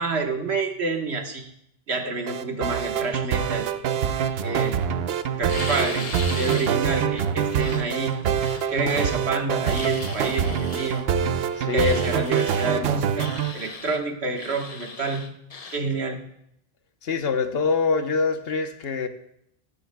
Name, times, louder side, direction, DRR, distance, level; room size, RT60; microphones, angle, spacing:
voice 1, 0.0-1.5 1.9-3.7 4.4-4.8 5.4-6.1 6.3-8.2 8.7-11.1 11.7-15.4 15.7-16.2, right 3 dB, 90° right, 1.5 m, -28 dB
sound 1, 2.3-13.5, right 8 dB, 75° right, 0.8 m, -25 dB
sound 2, 5.5-6.7 7.2-9.3 9.6-11.0 11.8-12.7 13.2-14.0 14.3-15.8, left 4 dB, 40° left, 0.8 m, -38 dB
voice 2, 11.6-12.0 17.0-19.1, left 4 dB, 70° left, 1.1 m, -25 dB
14.5 x 12.5 x 2.2 m
omnidirectional pair, 1.1 m